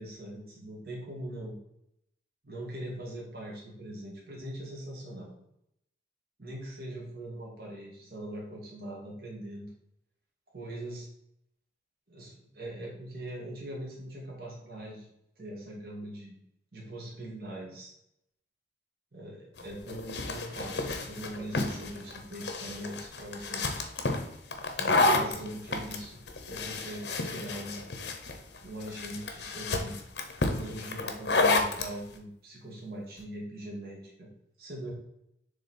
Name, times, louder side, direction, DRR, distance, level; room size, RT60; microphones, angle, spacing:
voice 1, 0.0-1.6 2.4-5.3 6.4-9.7 10.5-11.1 12.1-15.1 15.4-16.4 16.7-17.9 19.1-23.7 24.8-26.2 26.5-27.9 28.6-30.0 30.5-34.3 34.6-34.9, right 1 dB, 55° right, -3 dB, 1.9 m, -41 dB
sound 1, 19.6-31.9, left 2 dB, 75° left, 0.8 m, -30 dB
6.8 x 3.4 x 4.2 m, 0.77 s
head